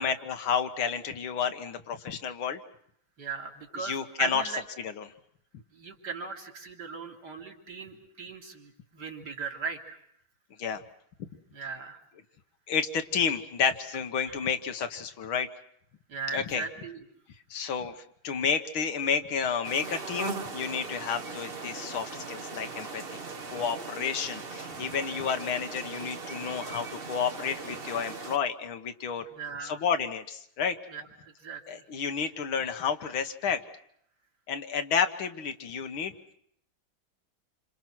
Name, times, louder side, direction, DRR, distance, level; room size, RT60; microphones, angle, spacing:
voice 1, 0.0-2.6 3.8-4.4 4.8-5.1 10.6-10.8 12.7-15.5 16.3-16.6 17.5-18.0 18.2-23.2 23.5-29.2 29.6-30.8 31.7-33.6 34.5-36.3, left 6 dB, 80° left, 8 dB, 2.1 m, -30 dB
voice 2, 3.2-4.6 5.7-10.0 11.5-12.0 14.2-14.4 16.1-17.0 29.3-29.8 30.9-31.8, right 5 dB, 55° right, 2 dB, 3.3 m, -38 dB
sound 1, 19.6-28.4, right 4 dB, 35° right, 1.2 m, -39 dB
28.0 x 26.0 x 6.1 m, 0.68 s
omnidirectional pair, 2.2 m